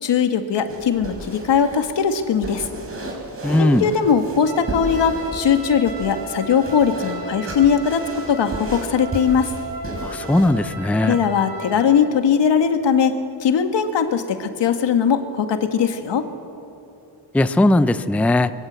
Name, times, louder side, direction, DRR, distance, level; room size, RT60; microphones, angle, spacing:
voice 1, 0.0-2.6 3.6-8.0 8.3-9.5 11.0-16.3, left 7 dB, 80° left, 7 dB, 1.8 m, -20 dB
sound 1, 0.6-10.5, right 1 dB, 30° right, 4.9 m, -33 dB
voice 2, 3.4-3.9 10.0-11.2 17.3-18.5, left 1 dB, 5° left, 13 dB, 0.5 m, -18 dB
Trumpet, 4.4-12.1, right 3 dB, 55° right, 7.4 m, -35 dB
23.5 x 23.0 x 8.2 m, 2.7 s
wide cardioid pair, 155°, 42 cm